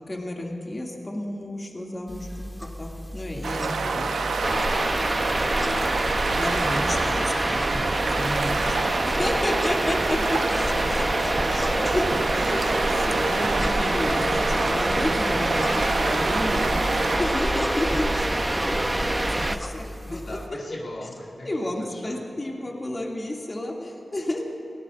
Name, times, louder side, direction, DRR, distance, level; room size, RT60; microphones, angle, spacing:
voice 1, 0.1-2.3 2.8-4.1 6.3-15.7 16.0-19.0 19.3-20.4 21.4-24.4, left 1 dB, 35° left, -1 dB, 2.6 m, -31 dB
sound 1, 2.1-20.5, equal, 5° left, 1.6 m, -38 dB
sound 2, 3.4-17.2, right 4 dB, 85° right, 0.9 m, -28 dB
voice 2, 3.9-4.3 5.6-6.4 9.9-10.7 18.6-19.1 20.0-21.5 21.9-22.3, left 1 dB, 65° left, -4 dB, 1.9 m, -43 dB
sound 3, 4.4-19.6, right 1 dB, 20° right, 0.8 m, -26 dB
24.5 x 18.0 x 2.6 m, 3.0 s
cardioid pair, 55°, 0 cm